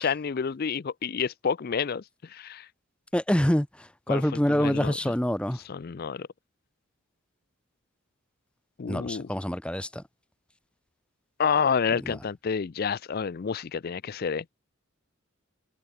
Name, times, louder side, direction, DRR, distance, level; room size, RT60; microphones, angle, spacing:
voice 1, 0.0-2.7 4.1-4.2 4.5-5.0 5.7-6.3 8.8-9.3 11.4-14.5, left 6 dB, 45° left, 0.4 m, -29 dB
voice 2, 3.1-5.6 8.9-10.0 12.0-12.2, equal, 5° left, 0.7 m, -26 dB
head